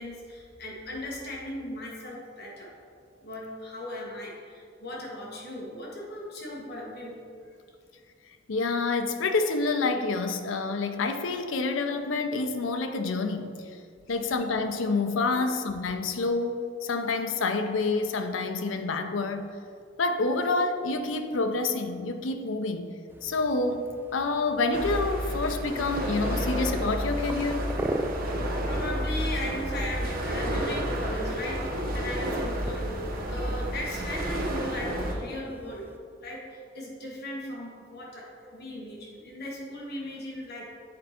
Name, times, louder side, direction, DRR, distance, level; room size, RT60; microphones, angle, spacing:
voice 1, 0.0-2.7 3.2-7.2 14.1-14.2 15.3-15.5 28.2-28.3 28.6-40.6, left 1 dB, 55° left, -3 dB, 1.4 m, -37 dB
voice 2, 8.5-13.6 14.1-19.5 20.0-22.9 23.2-23.9 24.1-27.7, left 3 dB, 85° left, 7 dB, 0.5 m, -28 dB
sound 1, 23.1-36.0, right 1 dB, 10° right, 0.3 m, -41 dB
sound 2, 24.7-35.1, equal, 50° right, 0.8 m, -31 dB
7.7 x 4.5 x 4.3 m, 2.2 s
head